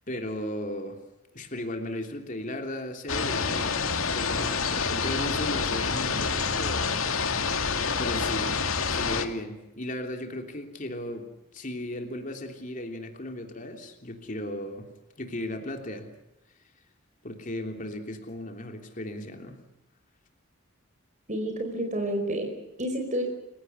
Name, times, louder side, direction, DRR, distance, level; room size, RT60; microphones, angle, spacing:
voice 1, 0.1-1.0 1.3-7.0 8.0-8.6 8.9-11.3 11.5-14.9 15.2-16.1 17.2-19.6, left 1 dB, 40° left, 4 dB, 3.2 m, -36 dB
sound 1, 3.1-9.3, left 5 dB, 80° left, 2.3 m, -27 dB
voice 2, 21.3-23.2, right 1 dB, 35° right, 4 dB, 4.9 m, -30 dB
30.0 x 17.0 x 8.2 m, 0.93 s
head